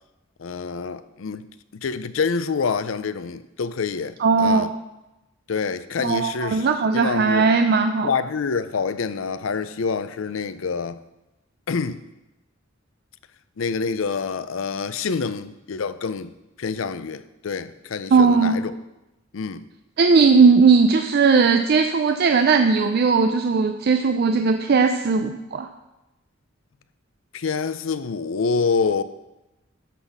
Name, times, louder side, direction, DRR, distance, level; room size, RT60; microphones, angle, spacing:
voice 1, 0.4-1.4 1.7-4.7 5.5-6.7 6.9-7.5 8.0-11.0 11.7-12.0 13.6-16.3 16.6-18.8 19.3-19.6 27.3-29.0, left 5 dB, 75° left, 0.5 m, -26 dB
voice 2, 4.2-4.7 6.0-8.1 18.1-18.6 20.0-25.7, right 4 dB, 50° right, 0.4 m, -18 dB
11.5 x 4.1 x 7.2 m
head